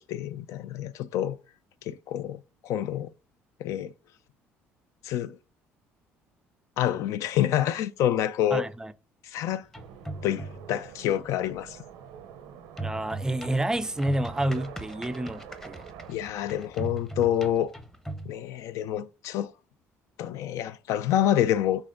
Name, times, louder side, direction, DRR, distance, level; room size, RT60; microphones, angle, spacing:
voice 1, 0.0-1.4 1.8-3.1 3.6-3.9 5.0-5.4 6.8-8.7 9.2-9.7 10.2-11.8 16.1-17.7 18.3-19.5 20.2-21.9, left 11 dB, 70° left, 0.3 m, -27 dB
voice 2, 8.5-8.9 12.8-15.8, right 1 dB, 10° right, 0.3 m, -29 dB
sound 1, 9.6-10.8 12.8-18.3, right 2 dB, 10° left, 0.7 m, -39 dB
sound 2, 9.7-16.1, right 8 dB, 90° right, 0.6 m, -46 dB
5.5 x 3.4 x 2.5 m
supercardioid pair, 85°, 5 cm